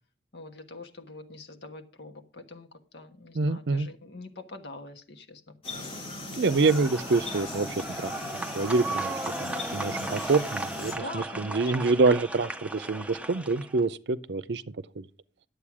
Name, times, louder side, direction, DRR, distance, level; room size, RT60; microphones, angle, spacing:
voice 1, 0.3-5.4 5.7-5.8 9.9-10.2 11.0-11.7, left 2 dB, 75° left, 1.4 m, -44 dB
voice 2, 3.3-3.9 6.4-8.1 8.5-14.6 15.0-15.1, right 3 dB, 75° right, 0.6 m, -26 dB
sound 1, 5.6-10.9, left 2 dB, 30° left, 3.2 m, -39 dB
sound 2, 6.4-13.8, right 2 dB, 5° right, 0.6 m, -36 dB
10.0 x 7.9 x 4.8 m
head